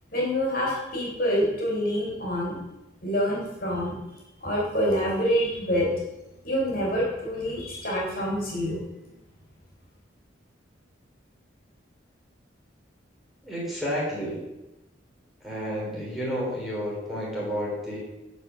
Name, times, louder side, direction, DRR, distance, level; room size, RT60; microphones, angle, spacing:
voice 1, 0.1-2.6 3.0-3.9 4.4-5.9 6.4-8.8, equal, 50° left, -4 dB, 3.6 m, -26 dB
voice 2, 13.4-14.4 15.4-18.0, equal, ahead, -7 dB, 3.5 m, -31 dB
13.5 x 5.3 x 6.3 m, 0.97 s
head